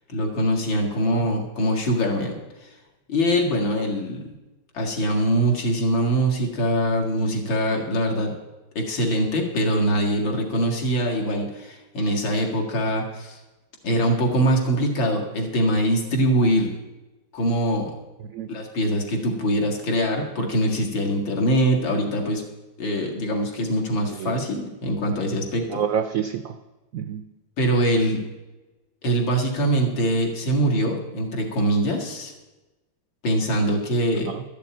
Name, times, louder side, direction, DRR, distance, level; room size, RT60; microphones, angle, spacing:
voice 1, 0.1-2.4 3.1-4.3 4.7-8.3 8.8-13.4 13.8-16.7 17.3-17.9 18.5-22.4 22.8-25.8 27.6-28.2 29.0-32.3 33.2-34.3, right 1 dB, 80° left, 0 dB, 2.8 m, -23 dB
voice 2, 25.7-26.6 26.9-27.3 34.3-34.4, right 8 dB, 75° right, 9 dB, 0.7 m, -28 dB
12.5 x 6.9 x 8.8 m, 1.1 s
omnidirectional pair, 2.1 m